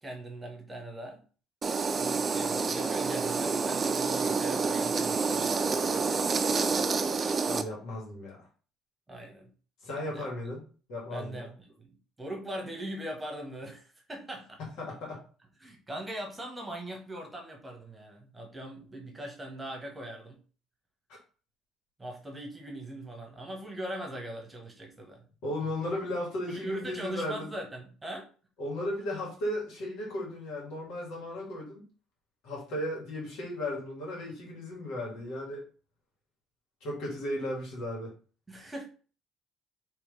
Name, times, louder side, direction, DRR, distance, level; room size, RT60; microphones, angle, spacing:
voice 1, 0.0-1.2 2.0-6.3 9.1-9.5 9.9-10.3 11.1-14.6 15.6-20.4 22.0-25.3 25.6-25.7 26.5-28.3 38.5-38.8, right 1 dB, 15° right, 1 dB, 1.3 m, -41 dB
sound 1, 1.6-7.6, right 4 dB, 35° right, 0.5 m, -28 dB
voice 2, 7.4-8.4 9.8-10.6 10.9-11.5 14.8-15.2 25.4-27.5 28.6-31.8 32.4-35.6 36.8-38.1, left 1 dB, 75° left, -2 dB, 1.9 m, -35 dB
3.4 x 3.0 x 3.3 m, 0.39 s
supercardioid pair, 75°, 0 cm